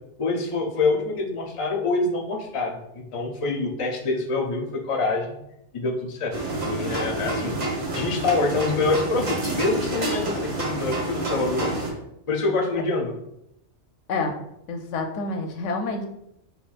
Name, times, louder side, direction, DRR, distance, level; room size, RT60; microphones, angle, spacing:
voice 1, 0.2-5.4 5.7-7.5 7.9-11.7 12.3-13.1, left 3 dB, 40° left, 1 dB, 0.5 m, -26 dB
sound 1, 6.3-11.9, right 2 dB, 90° right, 1.5 m, -28 dB
voice 2, 14.7-16.1, left 3 dB, 85° left, 4 dB, 0.9 m, -28 dB
5.8 x 2.3 x 2.4 m, 0.80 s
omnidirectional pair, 1.2 m